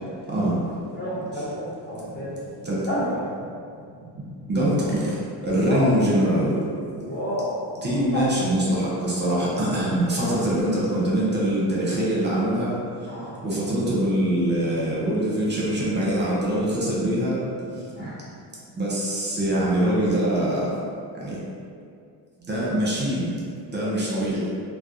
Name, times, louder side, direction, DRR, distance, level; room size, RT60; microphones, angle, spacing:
voice 1, 0.3-0.6 1.3-1.4 2.6-2.8 4.5-5.1 5.4-6.6 7.8-12.7 13.4-17.4 18.0-18.1 18.7-20.7 21.2-21.4 22.5-23.3 23.7-24.4, right 1 dB, 25° right, -6 dB, 0.6 m, -23 dB
voice 2, 0.9-2.4 2.9-3.2 5.5-5.9 6.9-7.6 8.1-8.2 10.2-10.3 13.1-13.4 18.0-18.2, equal, 25° left, -8 dB, 0.4 m, -30 dB
2.2 x 2.2 x 2.6 m, 2.4 s
cardioid pair, 85°, 47 cm